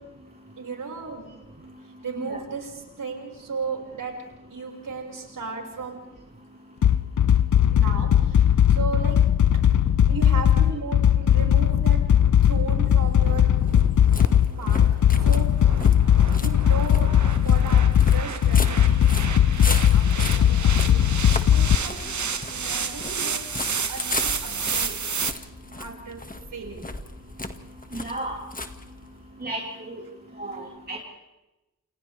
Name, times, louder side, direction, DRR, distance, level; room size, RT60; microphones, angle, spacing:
voice 1, 0.6-1.3 2.0-4.2 4.5-6.0 7.7-9.2 10.1-12.0 12.4-13.5 14.6-15.5 16.4-21.1 21.5-22.0 22.5-23.4 23.9-24.9 25.8-26.2 26.5-26.9, right 4 dB, 80° right, 0 dB, 5.9 m, -35 dB
sound 1, 6.8-21.8, left 10 dB, 65° left, 0.6 m, -19 dB
sound 2, 10.7-25.3, right 6 dB, 60° right, 1.5 m, -33 dB
sound 3, 12.8-29.3, left 2 dB, 25° left, 2.0 m, -37 dB
voice 2, 27.9-28.4 29.4-30.0 30.4-31.0, right 2 dB, 30° right, -5 dB, 4.9 m, -33 dB
30.0 x 28.5 x 3.5 m, 1.0 s
cardioid pair, 60°, 32 cm